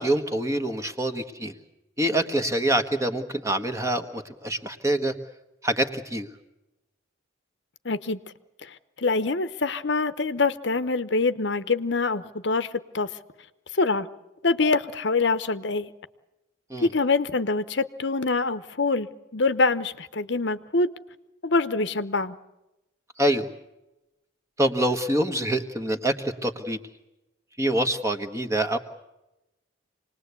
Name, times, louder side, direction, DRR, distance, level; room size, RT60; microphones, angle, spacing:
voice 1, 0.0-1.5 2.0-5.1 5.6-6.3 16.7-16.9 23.2-23.5 24.6-26.8 27.6-28.8, right 1 dB, 15° right, 7 dB, 1.4 m, -25 dB
voice 2, 7.8-8.2 8.6-13.1 13.7-14.1 14.4-15.9 16.8-20.9 21.4-22.4, left 3 dB, 60° left, 12 dB, 0.9 m, -25 dB
27.0 x 19.5 x 8.3 m, 0.96 s
head